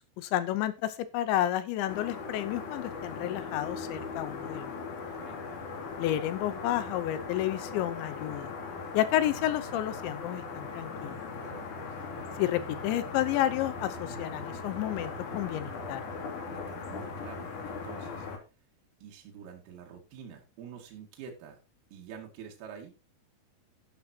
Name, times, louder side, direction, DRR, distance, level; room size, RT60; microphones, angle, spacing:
voice 1, 0.2-4.8 6.0-8.5 8.9-11.2 12.4-16.0, left 13 dB, 80° left, 13 dB, 2.8 m, -31 dB
sound 1, 1.9-18.4, left 4 dB, 50° left, 2.9 m, -39 dB
voice 2, 11.4-11.7 16.5-18.3 19.0-21.6 21.9-23.0, right 7 dB, 80° right, 0 dB, 4.7 m, -47 dB
11.5 x 11.0 x 2.8 m, 0.29 s
omnidirectional pair, 5.9 m